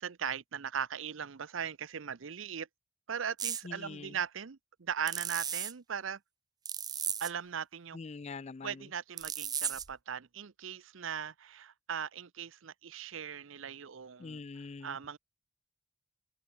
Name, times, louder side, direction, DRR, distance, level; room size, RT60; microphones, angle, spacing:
voice 1, 0.0-2.7 3.1-6.2 7.2-8.0 8.6-14.4 14.8-15.2, right 7 dB, 70° right, 0.6 m, -39 dB
sound 1, 3.4-3.6 5.1-5.7 6.6-7.3 9.2-9.9, right 8 dB, 20° right, 0.6 m, -35 dB
voice 2, 3.6-4.2 7.9-8.9 14.2-15.0, left 4 dB, 30° left, 0.4 m, -44 dB
open air
head